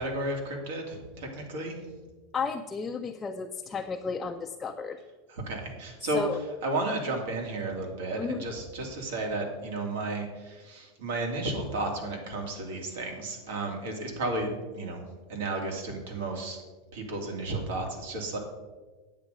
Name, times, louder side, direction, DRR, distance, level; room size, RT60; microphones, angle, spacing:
voice 1, 0.0-1.9 5.3-6.3 6.6-15.0 15.3-16.6 16.9-18.4, right 2 dB, 85° right, 2 dB, 2.6 m, -33 dB
voice 2, 2.3-5.0 6.1-6.4 8.2-8.4, left 5 dB, 15° left, 4 dB, 0.4 m, -33 dB
9.2 x 8.2 x 5.1 m, 1.3 s
supercardioid pair, 170°, 0 cm